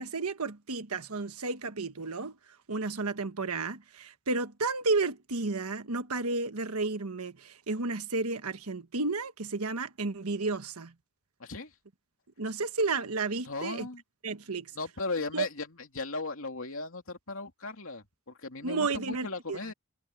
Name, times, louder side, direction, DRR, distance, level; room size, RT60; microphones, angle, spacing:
voice 1, 0.0-2.4 2.7-10.9 12.4-13.9 14.2-14.7 15.3-15.5 18.6-19.6, right 3 dB, 85° right, 1.4 m, -32 dB
voice 2, 11.4-11.7 13.4-14.0 14.7-19.7, left 3 dB, 65° left, 3.1 m, -37 dB
head